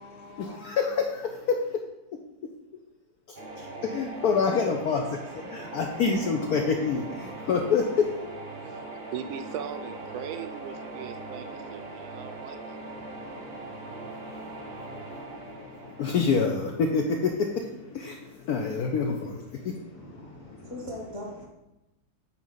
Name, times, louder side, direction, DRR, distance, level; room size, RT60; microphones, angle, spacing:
voice 1, 0.1-1.8 2.1-2.2 3.3-8.1 8.6-8.7 12.8-20.7, left 5 dB, 75° left, 2 dB, 0.9 m, -29 dB
sound 1, 3.3-17.2, right 2 dB, 60° right, 0.5 m, -41 dB
voice 2, 8.6-12.8, right 8 dB, 80° right, 9 dB, 1.4 m, -39 dB
voice 3, 19.9-21.5, left 1 dB, 30° left, -1 dB, 0.5 m, -40 dB
8.2 x 4.4 x 3.9 m, 0.98 s
omnidirectional pair, 2.2 m